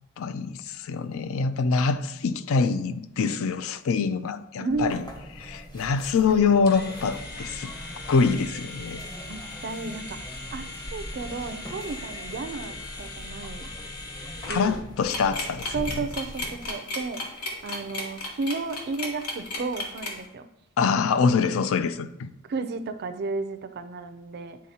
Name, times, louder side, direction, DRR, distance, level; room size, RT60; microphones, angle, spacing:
voice 1, 0.2-5.0 5.4-7.7 8.1-9.0 14.5-15.7 20.8-22.3, left 5 dB, 65° left, 0.4 m, -25 dB
voice 2, 4.6-5.0 9.3-13.7 14.5-14.8 15.7-17.2 17.6-20.5 21.0-21.1 22.5-24.6, right 3 dB, 50° right, 0.4 m, -33 dB
sound 1, 4.7-16.7, equal, 20° left, 0.8 m, -41 dB
sound 2, 6.7-14.8, left 3 dB, 45° left, 1.1 m, -40 dB
sound 3, 15.1-20.3, left 2 dB, 85° left, 1.2 m, -33 dB
9.7 x 3.7 x 2.8 m
head